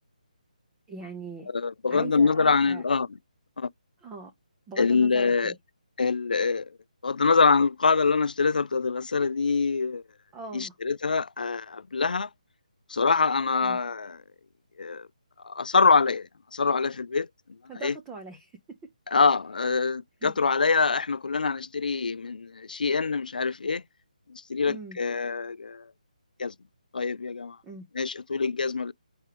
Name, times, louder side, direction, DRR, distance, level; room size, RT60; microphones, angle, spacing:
voice 1, 0.9-1.5 1.9-2.8 4.0-4.3 4.7-5.5 10.3-10.7 13.6-13.8 17.7-18.5 20.2-20.3 24.7-25.0 27.6-27.8, right 4 dB, 10° right, 0.5 m, -40 dB
voice 2, 1.5-3.1 3.6-3.7 4.8-5.5 6.0-6.7 7.0-10.0 10.5-12.3 12.9-14.2 14.8-15.1 15.4-17.3 17.7-17.9 19.1-23.8 24.3-25.9 26.4-26.5 26.9-27.6 27.9-28.9, left 4 dB, 80° left, 0.3 m, -25 dB
4.4 x 3.5 x 3.3 m
hypercardioid pair, 165°, 4 cm